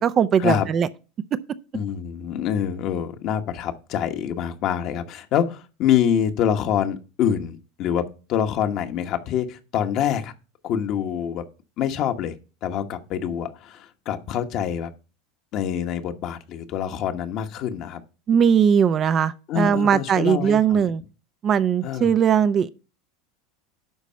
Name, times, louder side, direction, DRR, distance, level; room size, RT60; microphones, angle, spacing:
voice 1, 0.0-0.9 18.3-21.0 21.4-22.7, right 7 dB, 35° right, 0.6 m, -19 dB
voice 2, 1.7-8.0 8.3-10.3 10.6-11.4 11.8-12.4 12.6-14.9 15.5-18.0 19.5-20.9 21.8-22.1, left 9 dB, 50° left, 1.2 m, -25 dB
11.0 x 4.1 x 5.6 m
hypercardioid pair, 100°, 0 cm